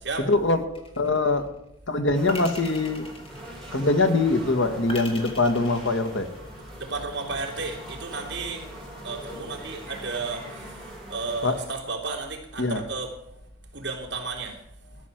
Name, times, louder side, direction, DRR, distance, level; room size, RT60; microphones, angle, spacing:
voice 1, 0.3-0.6 1.0-1.5 1.9-3.1 3.7-6.3 11.4-11.5 12.6-12.8, left 2 dB, 75° left, 7 dB, 1.5 m, -23 dB
sound 1, 0.7-1.4 2.3-4.0 4.9-6.7, left 2 dB, 30° left, 1.8 m, -40 dB
sound 2, 2.1-11.7, right 1 dB, ahead, 3.0 m, -42 dB
voice 2, 6.8-8.7 9.0-13.1 13.7-14.6, right 3 dB, 60° right, 0 dB, 3.0 m, -33 dB
13.5 x 6.3 x 9.2 m, 0.80 s
head